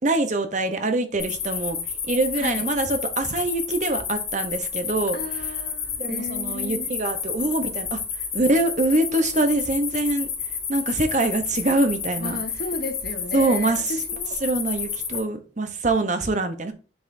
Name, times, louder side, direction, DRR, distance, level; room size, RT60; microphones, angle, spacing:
voice 1, 0.0-1.8 2.1-5.5 6.0-8.0 8.3-10.3 10.7-12.4 13.3-14.0 14.4-16.7, right 2 dB, 40° right, 0.9 m, -24 dB
sound 1, 1.2-15.2, left 6 dB, 30° left, 3.0 m, -30 dB
voice 2, 2.4-2.7 5.1-6.9 12.2-14.4, left 2 dB, 50° left, 1.0 m, -34 dB
7.1 x 5.5 x 2.7 m
head